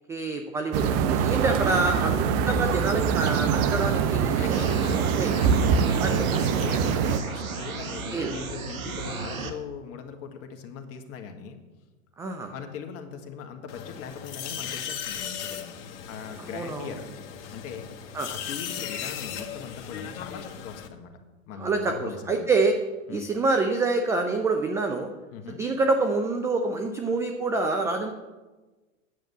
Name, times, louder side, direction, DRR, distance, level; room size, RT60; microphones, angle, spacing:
voice 1, 0.1-5.3 6.0-6.1 8.1-8.3 12.2-12.5 16.4-16.9 18.1-18.3 21.6-22.8 23.1-25.1 25.5-28.1, right 3 dB, 10° right, 5 dB, 0.3 m, -27 dB
sound 1, 0.7-7.2, right 7 dB, 35° right, 0.9 m, -24 dB
voice 2, 1.3-2.1 4.3-7.0 7.3-11.6 12.5-15.8 16.1-17.1 17.5-21.1 21.5-22.5 23.1-23.3 25.3-25.6, left 6 dB, 35° left, 6 dB, 1.7 m, -40 dB
sound 2, 4.5-9.5, right 4 dB, 90° right, 1.5 m, -35 dB
sound 3, 13.7-20.9, left 8 dB, 60° left, 1.4 m, -37 dB
9.3 x 7.1 x 8.0 m, 1.2 s
hypercardioid pair, 115°, 40 cm